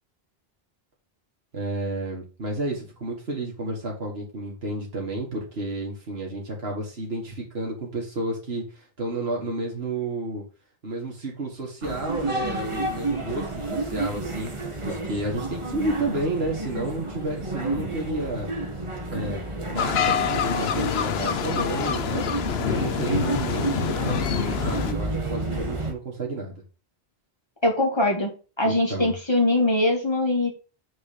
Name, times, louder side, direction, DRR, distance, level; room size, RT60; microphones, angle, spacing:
voice 1, 1.5-10.4 10.8-18.5 19.1-26.6 28.6-29.1, right 2 dB, 75° right, -2 dB, 2.3 m, -31 dB
sound 1, 11.8-25.9, right 2 dB, 30° right, 1.5 m, -30 dB
sound 2, 19.8-24.9, left 8 dB, 80° left, 1.0 m, -26 dB
voice 2, 27.6-28.3 28.6-30.5, left 2 dB, 25° left, 1 dB, 2.5 m, -22 dB
6.5 x 4.7 x 6.8 m, 0.35 s
omnidirectional pair, 1.1 m